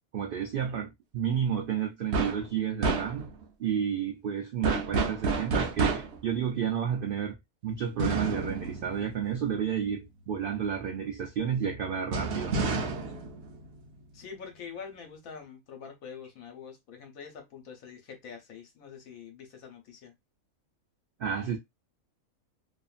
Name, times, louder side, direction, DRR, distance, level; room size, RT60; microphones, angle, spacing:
voice 1, 0.1-3.3 3.6-7.4 7.6-12.5 21.2-21.6, right 8 dB, 90° right, 0.4 m, -31 dB
sound 1, 2.1-2.5 2.8-3.4 4.6-6.3 8.0-9.8 12.1-14.2, right 4 dB, 60° right, 0.8 m, -30 dB
voice 2, 14.1-20.1, left 6 dB, 75° left, 1.2 m, -45 dB
2.7 x 2.5 x 2.4 m
omnidirectional pair, 1.5 m